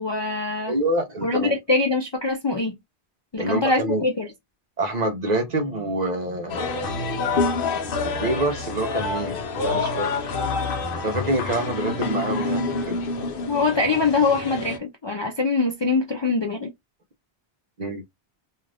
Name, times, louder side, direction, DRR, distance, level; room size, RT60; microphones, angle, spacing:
voice 1, 0.0-0.7 1.2-2.8 3.3-4.3 13.5-16.7, left 3 dB, 40° left, 0.4 m, -23 dB
voice 2, 0.7-1.6 3.4-4.1 4.8-6.9 8.0-10.3 11.0-13.0 17.8-18.0, right 2 dB, 50° right, 0.7 m, -27 dB
sound 1, 6.5-14.8, left 3 dB, 65° left, 0.8 m, -27 dB
2.4 x 2.4 x 3.3 m
omnidirectional pair, 1.1 m